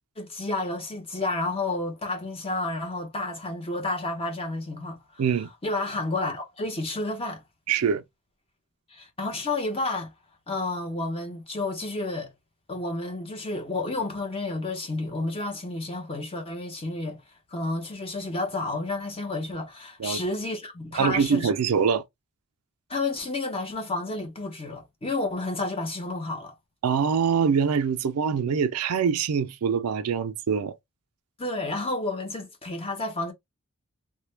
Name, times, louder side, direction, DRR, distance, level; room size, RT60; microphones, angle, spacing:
voice 1, 0.2-5.2 5.6-7.4 8.9-10.1 10.5-12.3 12.7-17.2 17.5-21.5 22.9-26.5 31.4-33.3, left 2 dB, 25° left, 0.9 m, -31 dB
voice 2, 5.2-5.5 7.7-8.0 20.0-20.2 21.0-22.0 26.8-30.7, right 6 dB, 90° right, 0.4 m, -24 dB
3.2 x 2.2 x 3.2 m
head